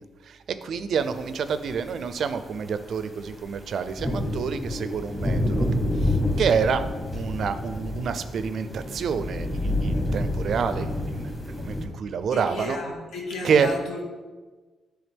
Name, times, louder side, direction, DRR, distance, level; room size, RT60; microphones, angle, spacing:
voice 1, 0.3-5.7 6.0-6.8 7.1-12.8 13.4-13.8, right 6 dB, 55° right, 11 dB, 0.4 m, -28 dB
sound 1, 1.5-1.6 2.1-11.9, left 1 dB, 15° left, 1.2 m, -28 dB
voice 2, 12.3-14.0, left 2 dB, 85° left, -2 dB, 1.3 m, -33 dB
9.9 x 3.7 x 3.5 m, 1.3 s
cardioid pair, 160°, 0 cm